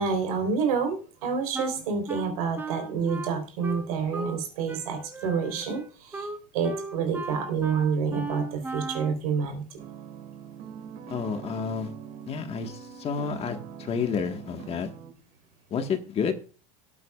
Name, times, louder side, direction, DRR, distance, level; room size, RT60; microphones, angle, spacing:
voice 1, 0.0-6.3 6.5-9.7, right 5 dB, 85° right, 5 dB, 3.9 m, -28 dB
Wind instrument woodwind instrument, 1.5-4.4 4.7-9.2, right 3 dB, 10° right, 1.1 m, -36 dB
sound 1, 9.8-15.1, right 8 dB, 55° right, 2.2 m, -43 dB
voice 2, 11.1-11.9 12.3-14.9 15.7-16.3, left 6 dB, 35° left, 6 dB, 1.5 m, -30 dB
18.5 x 8.2 x 2.4 m, 0.36 s
supercardioid pair, 120°, 18 cm